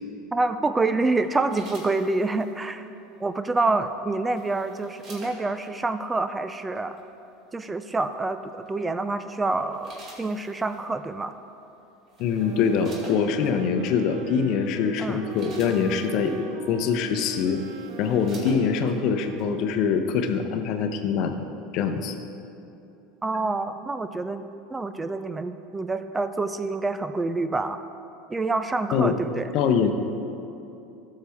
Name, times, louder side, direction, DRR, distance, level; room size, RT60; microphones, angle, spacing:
voice 1, 0.3-2.9 3.2-7.0 7.5-11.4 15.0-15.2 23.2-27.8 28.3-29.5, right 3 dB, 15° right, 11 dB, 0.4 m, -27 dB
sound 1, 1.1-2.5 3.8-5.7 6.7-7.0 8.7-9.0 9.5-10.9 11.7-11.8 12.1-13.5 14.3-14.4 14.9-16.4 17.1-17.2 17.4-19.0 19.4-19.5, right 2 dB, 45° right, 2.2 m, -47 dB
voice 2, 12.2-16.3 16.7-17.6 18.0-21.3 21.7-22.1 28.9-29.2 29.5-29.9, left 6 dB, 55° left, 7 dB, 0.7 m, -24 dB
sound 2, 12.4-20.3, right 3 dB, 60° right, 0.7 m, -41 dB
12.5 x 6.6 x 3.5 m, 2.8 s
hypercardioid pair, 85°, 0 cm